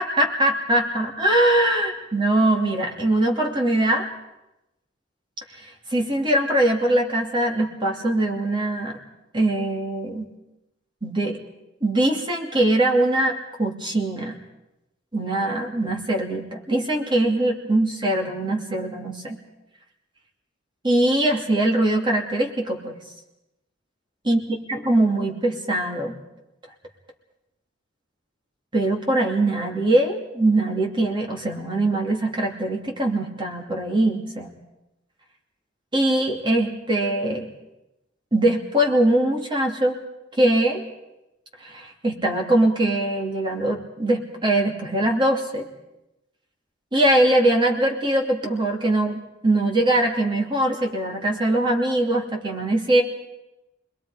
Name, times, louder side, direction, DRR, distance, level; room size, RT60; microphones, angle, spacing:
voice 1, 0.0-4.1 5.6-9.0 9.3-10.3 11.0-11.4 11.8-14.4 15.1-19.4 20.8-23.0 24.3-24.4 24.7-26.1 28.7-34.5 35.9-37.5 38.3-40.0 40.4-40.8 41.6-45.6 46.9-53.0, right 1 dB, 25° right, 1 dB, 2.8 m, -22 dB
29.0 x 21.5 x 5.1 m, 0.92 s
head